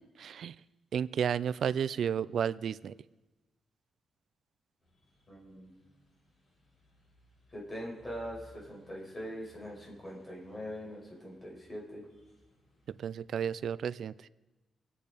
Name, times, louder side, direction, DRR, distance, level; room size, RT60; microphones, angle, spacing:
voice 1, 0.2-0.6 0.9-2.9 12.9-14.1, right 8 dB, 65° right, 17 dB, 0.4 m, -32 dB
sound 1, 4.8-13.2, left 1 dB, 40° left, 6.7 m, -63 dB
voice 2, 5.3-5.7 7.5-12.1, equal, 25° left, -3 dB, 5.5 m, -42 dB
24.0 x 9.3 x 5.1 m, 1.1 s
wide cardioid pair, 140°, 0 cm